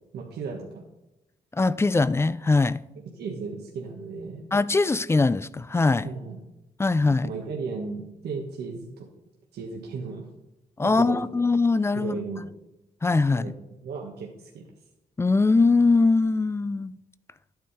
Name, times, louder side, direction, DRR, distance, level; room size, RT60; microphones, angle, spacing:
voice 1, 0.1-0.8 3.1-4.4 6.0-6.4 7.2-9.1 9.5-10.3 10.8-11.2 11.9-12.5 13.3-13.5 13.8-14.7, right 4 dB, 90° right, 1.4 m, -35 dB
voice 2, 1.6-2.8 4.5-6.1 6.8-7.3 10.8-12.2 13.0-13.5 15.2-17.0, left 3 dB, 15° left, 0.4 m, -21 dB
12.5 x 8.6 x 4.2 m
cardioid pair, 110°, 16 cm